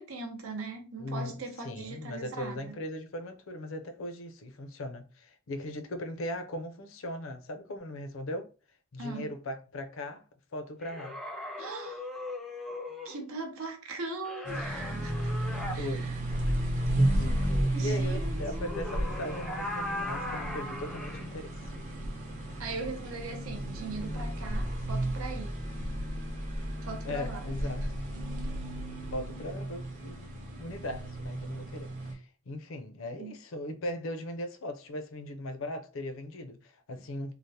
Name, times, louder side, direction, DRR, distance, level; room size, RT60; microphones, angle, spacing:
voice 1, 0.0-2.7 9.0-9.3 11.6-12.1 13.0-15.3 15.7-16.2 17.7-18.4 22.6-25.6 26.8-27.9 28.4-28.6 33.2-33.4, right 3 dB, 75° right, 0.7 m, -40 dB
voice 2, 1.0-1.3 1.6-8.5 8.9-10.2 10.5-11.2 14.9-15.0 15.8-16.1 16.5-16.6 16.9-21.5 27.0-27.9 29.1-37.3, left 1 dB, 65° left, 0.5 m, -38 dB
sound 1, 10.8-13.2 14.2-15.8 18.3-21.3, left 1 dB, ahead, 0.3 m, -38 dB
sound 2, 14.4-32.1, right 1 dB, 35° right, 0.7 m, -33 dB
3.2 x 2.0 x 2.7 m
head